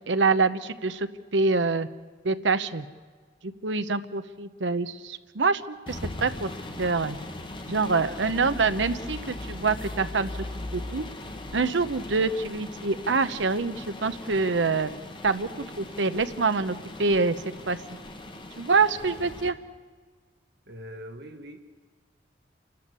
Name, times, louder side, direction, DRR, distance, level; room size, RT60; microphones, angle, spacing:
voice 1, 0.1-1.9 2.2-2.8 3.4-6.5 6.8-7.2 7.7-10.3 10.5-11.0 11.5-14.9 15.2-15.5 15.8-17.4 17.7-17.8 18.6-19.5, right 4 dB, 80° right, 11 dB, 0.9 m, -25 dB
sound 1, 5.9-19.5, left 2 dB, 25° left, 1.5 m, -39 dB
voice 2, 7.8-8.2 20.7-21.7, right 1 dB, 60° right, 5 dB, 1.8 m, -43 dB
29.0 x 13.0 x 8.2 m, 1.5 s
head